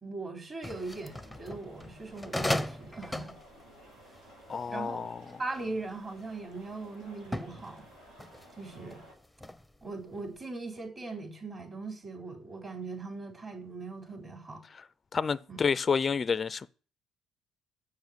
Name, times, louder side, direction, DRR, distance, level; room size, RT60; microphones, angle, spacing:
voice 1, 0.0-3.3 4.7-5.0 5.4-7.9 8.6-9.0 9.8-14.6 15.5-15.6, right 3 dB, 35° right, 3.7 m, -40 dB
sound 1, 0.6-5.6 6.2-6.6 7.2-9.9 10.2-10.4, left 1 dB, 5° left, 0.7 m, -37 dB
sound 2, 0.7-9.1, right 1 dB, 90° right, 4.6 m, -55 dB
voice 2, 4.5-5.4 14.7-14.8 15.1-16.7, left 5 dB, 35° left, 0.4 m, -29 dB
7.1 x 7.1 x 7.9 m
supercardioid pair, 80°, 0 cm